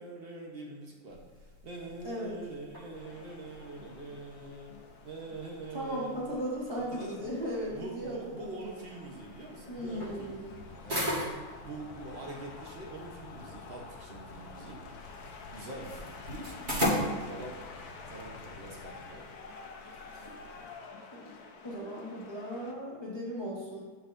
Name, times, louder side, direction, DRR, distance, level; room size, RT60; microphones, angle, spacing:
voice 1, 0.0-4.7 5.0-6.4 6.7-7.3 7.7-11.1 11.6-14.8 15.3-19.3, right 2 dB, 45° right, -2 dB, 0.7 m, -44 dB
sound 1, 1.1-20.7, equal, 25° right, 1.4 m, -40 dB
voice 2, 2.0-2.4 5.7-8.5 9.7-10.5 17.3-17.4 21.1-21.2 21.6-23.8, equal, 25° left, -5 dB, 0.6 m, -37 dB
sound 2, 2.9-22.7, left 4 dB, 65° left, 0.9 m, -50 dB
sound 3, 9.8-19.1, left 3 dB, 85° left, 1.6 m, -52 dB
8.6 x 6.4 x 2.6 m, 1.4 s
omnidirectional pair, 2.3 m